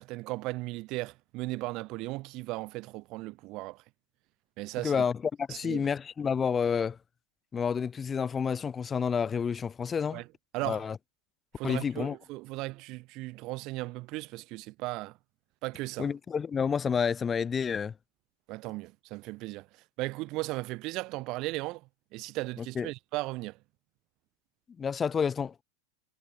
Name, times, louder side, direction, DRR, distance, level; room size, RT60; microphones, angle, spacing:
voice 1, 0.0-3.8 4.6-5.0 5.5-5.9 10.1-10.2 10.5-10.9 11.6-15.2 15.6-16.1 18.5-19.7 20.0-21.8 22.1-23.6, right 21 dB, 50° right, 2.2 m, -36 dB
voice 2, 4.8-7.0 7.5-10.2 10.7-11.0 11.6-12.1 16.0-17.9 22.8-22.9 24.8-25.6, left 6 dB, 25° left, 2.5 m, -29 dB
hypercardioid pair, 90°, 0 cm